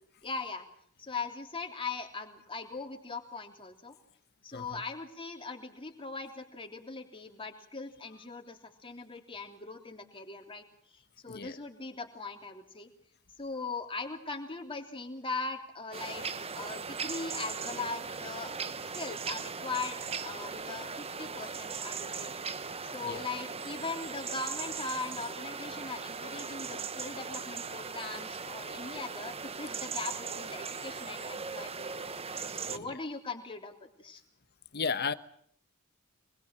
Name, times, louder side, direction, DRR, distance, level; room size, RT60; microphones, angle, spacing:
voice 1, 0.2-0.7 1.0-4.0 4.4-10.7 10.9-12.9 13.4-16.3 16.6-18.5 18.9-22.3 22.8-31.9 32.2-34.2, left 3 dB, 25° left, 3.3 m, -40 dB
sound 1, 15.9-32.8, right 5 dB, 25° right, 1.1 m, -39 dB
voice 2, 34.7-35.1, left 5 dB, 50° left, 1.2 m, -34 dB
24.5 x 21.5 x 7.6 m
head